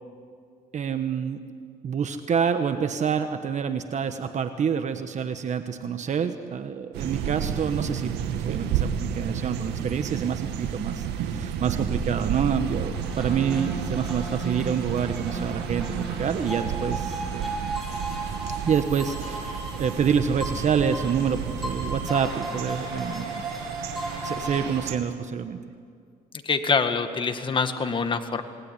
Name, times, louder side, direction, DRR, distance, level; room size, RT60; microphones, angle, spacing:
voice 1, 0.7-1.4 1.8-17.6 18.6-23.4 24.2-25.6, right 7 dB, 45° right, 8 dB, 1.3 m, -27 dB
sound 1, 6.9-25.0, right 8 dB, 85° right, 2.2 m, -32 dB
sound 2, 12.9-24.6, right 2 dB, ahead, 7.8 m, -35 dB
voice 2, 26.4-28.4, left 5 dB, 30° left, 7 dB, 1.8 m, -25 dB
27.5 x 19.5 x 10.0 m, 2.2 s
cardioid pair, 110°, 17 cm